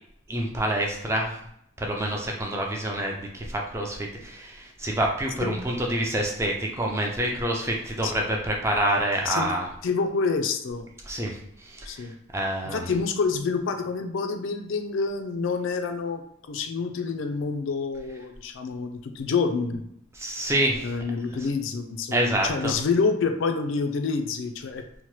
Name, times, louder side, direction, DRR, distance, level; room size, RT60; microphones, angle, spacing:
voice 1, 0.3-1.4 1.8-9.7 11.0-12.9 20.1-21.0 21.4-21.5 22.1-22.8, right 1 dB, 15° right, 0 dB, 0.3 m, -27 dB
voice 2, 9.8-10.9 11.9-12.1 12.7-16.2 16.5-19.8 20.8-24.8, left 4 dB, 70° left, 6 dB, 0.4 m, -27 dB
2.8 x 2.1 x 3.0 m, 0.74 s
head